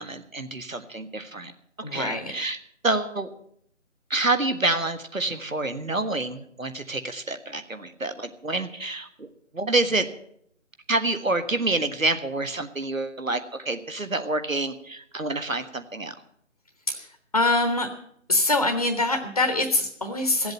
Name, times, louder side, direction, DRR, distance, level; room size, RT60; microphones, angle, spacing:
voice 1, 0.0-1.5 1.9-2.6 2.8-3.3 4.1-9.3 9.5-10.1 10.9-16.1, right 2 dB, 90° right, 9 dB, 1.7 m, -27 dB
voice 2, 1.8-2.3 16.9-17.1 17.3-17.9 18.3-20.5, left 2 dB, 30° left, 6 dB, 0.9 m, -24 dB
16.5 x 8.0 x 7.9 m, 0.69 s
figure-of-eight pair, 160°, 39 cm